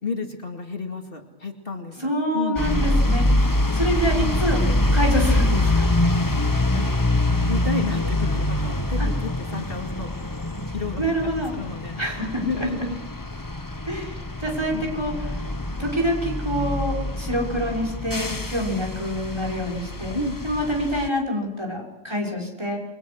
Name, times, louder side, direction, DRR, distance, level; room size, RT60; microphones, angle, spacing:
voice 1, 0.0-2.6 4.2-4.4 6.7-6.9 7.5-10.2 10.7-12.0 12.4-13.0 14.7-15.0 18.3-18.4 20.1-20.4, left 3 dB, 55° left, 3 dB, 2.5 m, -31 dB
voice 2, 2.0-3.2 3.7-4.6 4.9-5.9 9.0-9.1 11.0-11.5 12.0-12.7 13.9-15.1 15.8-20.2 20.4-22.8, equal, 25° right, 0 dB, 6.1 m, -26 dB
sound 1, 2.6-21.1, left 1 dB, 20° left, 1.2 m, -25 dB
29.0 x 23.0 x 6.3 m, 0.91 s
omnidirectional pair, 1.2 m